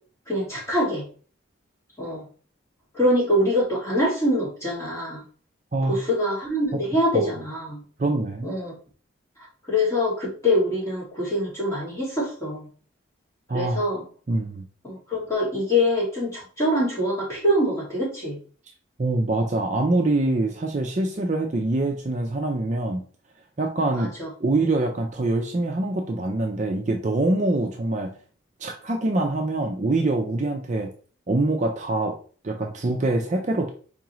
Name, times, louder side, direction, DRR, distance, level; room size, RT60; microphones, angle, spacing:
voice 1, 0.3-1.0 2.0-2.2 2.9-5.2 5.9-7.8 8.4-8.7 9.4-12.7 13.5-14.0 14.8-18.4 24.0-24.3, left 1 dB, 15° left, -6 dB, 2.0 m, -24 dB
voice 2, 8.0-8.5 13.5-13.8 14.3-14.6 19.0-23.0 23.6-24.1 24.4-28.2 28.6-30.9 31.3-32.2 32.4-33.7, right 2 dB, 35° right, 3 dB, 0.4 m, -24 dB
4.7 x 3.6 x 3.0 m, 0.41 s
head